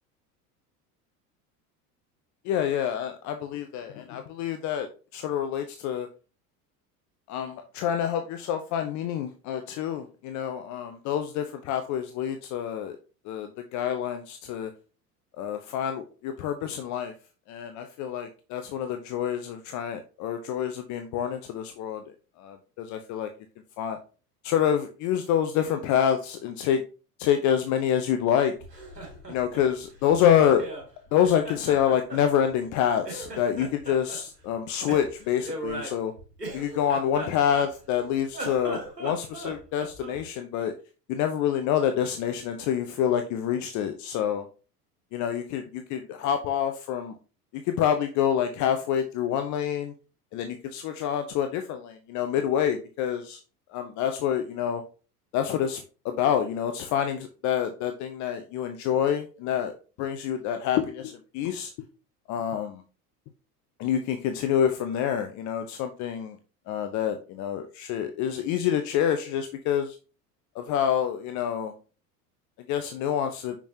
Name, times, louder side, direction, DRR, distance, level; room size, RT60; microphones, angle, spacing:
voice 1, 2.4-6.1 7.3-13.0 13.2-14.7 15.4-17.1 17.5-22.0 22.4-23.3 23.8-24.0 24.4-26.8 27.2-28.5 29.3-30.6 31.1-36.1 36.5-40.7 41.1-44.5 45.1-47.2 47.6-49.9 50.3-53.4 53.7-54.8 55.3-59.7 60.0-61.7 62.3-62.8 63.8-66.4 66.7-70.0 70.5-71.7 72.7-73.6, left 9 dB, 40° left, 7 dB, 0.7 m, -27 dB
Laughter, 28.6-30.9 31.2-32.8 33.0-34.2 34.9-38.0 38.3-40.2, right 1 dB, 90° right, 1.9 m, -38 dB
6.0 x 6.0 x 2.8 m, 0.35 s
figure-of-eight pair, 75°, 47 cm